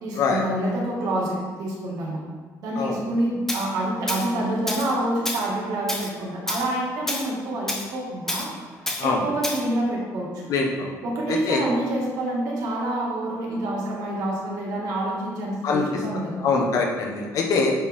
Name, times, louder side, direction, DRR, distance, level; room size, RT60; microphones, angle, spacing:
voice 1, 0.0-2.2 2.6-8.5 9.0-10.5 11.0-16.3, right 1 dB, 65° right, -3 dB, 2.0 m, -27 dB
Tools, 3.5-3.6 4.1-4.3 4.7-4.9 5.2-5.5 5.9-6.1 6.5-6.7 7.1-7.3 7.7-7.9 8.3-8.5 8.9-9.0 9.4-9.6, left 1 dB, 5° left, 0.7 m, -29 dB
voice 2, 10.5-11.0 11.3-11.6 15.6-15.9 16.4-17.7, left 4 dB, 60° left, 0 dB, 1.2 m, -23 dB
9.9 x 4.4 x 3.7 m, 1.5 s
cardioid pair, 170°, 7 cm